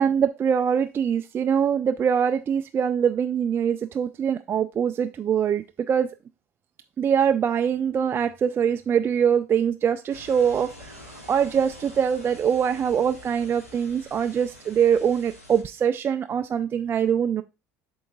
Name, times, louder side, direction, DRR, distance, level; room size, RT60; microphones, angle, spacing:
voice 1, 0.0-6.1 7.0-17.4, right 8 dB, 30° right, 0.4 m, -23 dB
sound 1, 10.1-15.6, left 1 dB, 85° left, 1.2 m, -46 dB
11.5 x 3.8 x 2.3 m
figure-of-eight pair, 65°, 7 cm